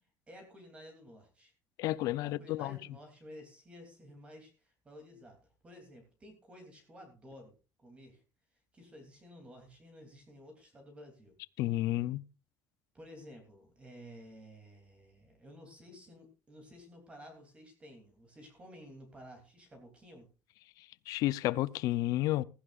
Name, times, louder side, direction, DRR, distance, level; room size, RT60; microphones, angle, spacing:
voice 1, 0.3-1.5 2.2-8.2 8.7-11.4 12.9-20.3, equal, 15° right, 3.1 m, -53 dB
voice 2, 1.8-2.8 11.6-12.2 21.1-22.4, left 16 dB, 60° left, 0.6 m, -31 dB
16.0 x 15.0 x 2.5 m
cardioid pair, 170°, 7 cm